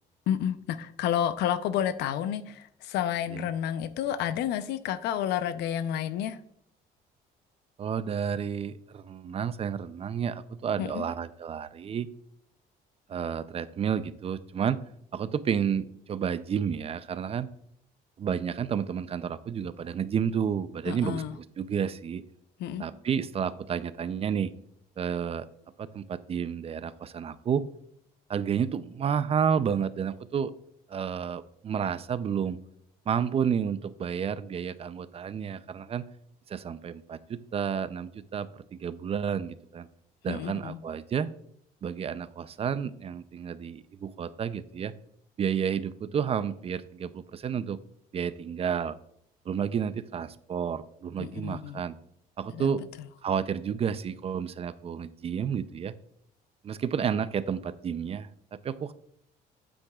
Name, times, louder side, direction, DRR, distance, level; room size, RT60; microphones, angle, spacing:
voice 1, 0.3-6.4 10.8-11.0 20.9-21.3 22.6-22.9 40.3-40.8 51.2-51.8 52.5-52.7, left 10 dB, 80° left, 0.6 m, -30 dB
voice 2, 7.8-12.1 13.1-14.8 15.1-17.5 18.2-22.2 22.8-24.5 25.0-25.5 25.8-27.7 28.3-30.5 30.9-32.6 33.1-36.1 36.5-39.9 40.2-41.3 41.8-44.9 45.4-47.8 48.1-49.0 49.5-52.0 52.4-52.8 53.2-55.9 56.6-58.9, right 7 dB, 35° right, 0.4 m, -31 dB
8.8 x 7.8 x 2.3 m
cardioid pair, 110°, 17 cm